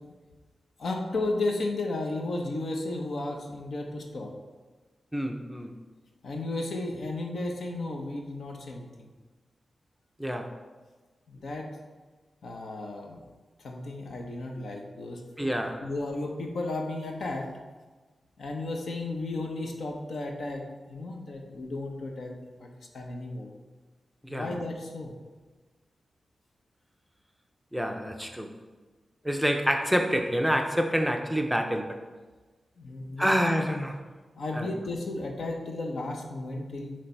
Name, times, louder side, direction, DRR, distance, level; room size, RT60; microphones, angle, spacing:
voice 1, 0.8-4.3 6.2-9.1 11.3-11.7 12.4-13.2 13.6-15.2 15.8-17.5 18.4-20.6 20.9-22.3 22.6-22.7 22.9-23.5 24.3-25.1 32.8-33.3 34.3-36.9, left 2 dB, 70° left, 1 dB, 1.1 m, -34 dB
voice 2, 5.1-5.7 10.2-10.5 15.4-15.8 24.2-24.6 27.7-28.5 29.2-32.0 33.2-34.0 34.5-34.7, equal, ahead, 4 dB, 0.5 m, -27 dB
9.4 x 3.3 x 4.5 m, 1.3 s
wide cardioid pair, 145°, 0 cm